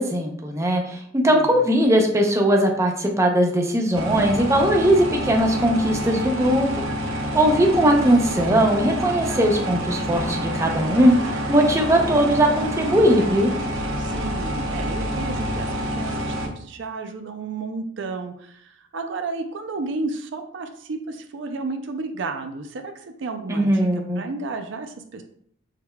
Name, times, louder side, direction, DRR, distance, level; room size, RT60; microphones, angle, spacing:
voice 1, 0.0-11.1 11.5-13.5 23.5-24.2, right 1 dB, 15° right, 2 dB, 0.5 m, -19 dB
sound 1, 3.9-16.5, equal, 75° right, 0.8 m, -27 dB
voice 2, 14.0-25.2, right 3 dB, 60° right, 6 dB, 0.4 m, -32 dB
6.5 x 3.4 x 2.2 m, 0.67 s
head